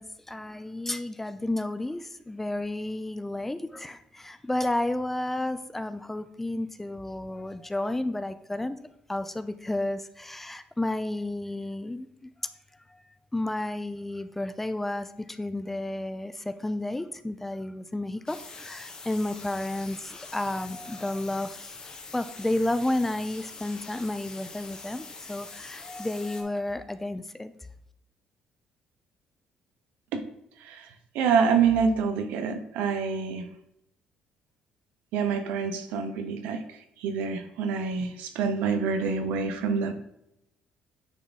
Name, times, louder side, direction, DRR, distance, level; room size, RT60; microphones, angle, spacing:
voice 1, 0.0-8.8 9.1-12.3 12.9-13.0 13.3-21.8 22.1-27.5, left 1 dB, 10° left, 12 dB, 0.4 m, -32 dB
sound 1, 18.3-26.4, left 4 dB, 30° left, 1.2 m, -44 dB
voice 2, 31.1-33.5 35.1-36.6 37.0-39.9, right 6 dB, 90° right, 7 dB, 0.8 m, -26 dB
9.2 x 3.5 x 4.0 m, 0.80 s
cardioid pair, 120°, 3 cm